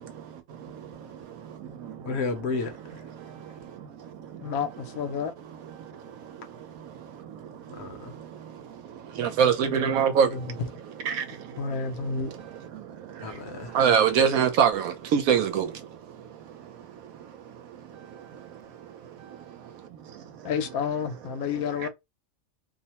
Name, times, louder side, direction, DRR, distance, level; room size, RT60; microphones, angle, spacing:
voice 1, 2.0-3.0 7.7-8.1 13.2-13.8, left 4 dB, 60° left, 0.8 m, -32 dB
voice 2, 4.4-5.3 10.2-10.4 11.6-12.3 20.4-21.9, left 6 dB, 90° left, 1.0 m, -30 dB
voice 3, 9.2-10.3 11.0-11.2 13.7-15.7, right 7 dB, 85° right, 1.1 m, -21 dB
2.6 x 2.1 x 2.8 m
omnidirectional pair, 1.4 m